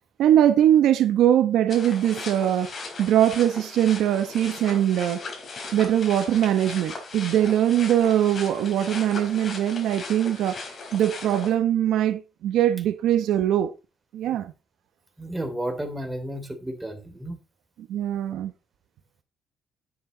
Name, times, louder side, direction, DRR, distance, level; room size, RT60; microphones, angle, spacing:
voice 1, 0.2-2.7 3.0-5.2 5.7-10.6 10.9-13.7 14.1-14.5 17.9-18.5, right 11 dB, 85° right, 1.0 m, -21 dB
sound 1, 1.7-11.5, left 3 dB, 45° left, 4.3 m, -38 dB
voice 2, 15.2-17.4, right 1 dB, 10° right, 3.0 m, -32 dB
9.4 x 8.4 x 3.9 m
cardioid pair, 90°, 0 cm